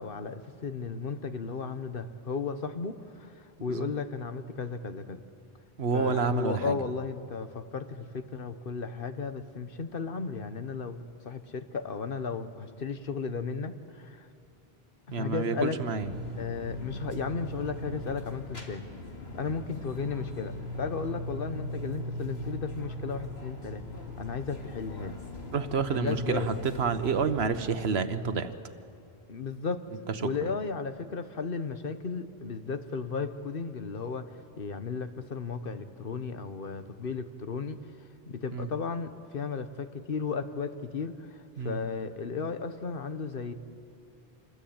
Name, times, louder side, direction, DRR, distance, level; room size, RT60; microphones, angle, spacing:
voice 1, 0.0-5.2 5.9-14.3 15.2-15.8 16.4-18.8 19.3-23.8 24.2-25.2 25.9-26.5 29.3-29.8 30.2-37.8 38.3-43.5, left 5 dB, 60° left, 10 dB, 1.3 m, -35 dB
voice 2, 5.8-6.7 15.1-16.1 25.5-28.5 38.5-38.7 41.6-41.8, right 5 dB, 80° right, 10 dB, 1.3 m, -29 dB
sound 1, 16.0-27.6, left 1 dB, 80° left, 2.8 m, -39 dB
27.0 x 21.0 x 8.8 m, 2.6 s
omnidirectional pair, 1.0 m